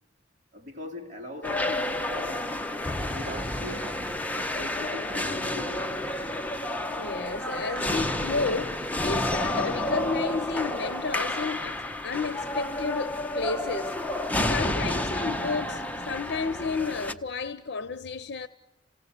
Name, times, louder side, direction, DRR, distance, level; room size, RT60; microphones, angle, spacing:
voice 1, 0.5-2.6 3.1-4.0 4.3-6.0, left 1 dB, 45° right, 3.8 m, -41 dB
sound 1, 1.4-17.1, left 1 dB, 10° left, 0.9 m, -30 dB
voice 2, 6.9-13.9 14.5-18.5, left 4 dB, 65° left, 0.7 m, -32 dB
28.0 x 17.5 x 8.2 m
head